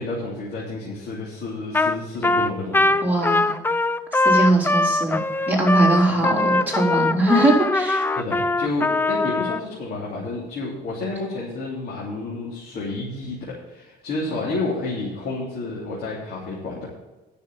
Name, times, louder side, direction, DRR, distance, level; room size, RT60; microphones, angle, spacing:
voice 1, 0.0-3.0 5.9-6.2 8.1-13.4 13.7-16.9, left 2 dB, 65° left, -5 dB, 3.1 m, -30 dB
Trumpet, 1.7-2.0 2.2-9.6, left 2 dB, 10° left, 0.5 m, -21 dB
voice 2, 3.0-3.5 4.1-5.2 5.5-8.0, right 2 dB, 10° right, -3 dB, 3.8 m, -20 dB
10.0 x 6.8 x 7.6 m, 1.1 s
cardioid pair, 110°, 17 cm